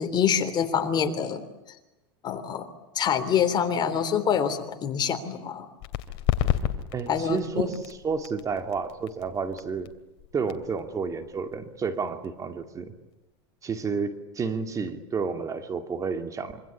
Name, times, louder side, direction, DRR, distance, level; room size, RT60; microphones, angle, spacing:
voice 1, 0.0-1.4 2.2-2.7 3.0-5.7 7.1-7.7, left 7 dB, 30° left, 9 dB, 3.5 m, -26 dB
sound 1, 5.8-13.1, left 11 dB, 50° left, 2.6 m, -33 dB
voice 2, 6.9-7.8 8.0-9.9 10.3-12.9 13.6-16.6, right 5 dB, 25° right, 7 dB, 2.5 m, -30 dB
26.5 x 25.5 x 8.5 m, 0.98 s
supercardioid pair, 125°, 14 cm